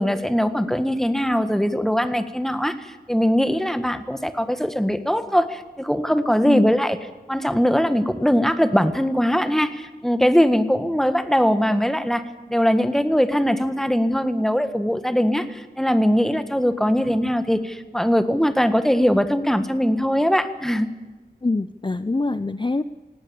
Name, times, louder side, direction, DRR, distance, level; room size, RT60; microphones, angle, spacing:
voice 1, 0.0-7.0 7.3-12.2 12.5-20.9, equal, ahead, 10 dB, 1.6 m, -21 dB
voice 2, 6.4-6.7 21.4-22.8, left 3 dB, 30° left, 14 dB, 0.6 m, -24 dB
18.0 x 17.5 x 8.7 m, 1.2 s
wide cardioid pair, 55°, 16 cm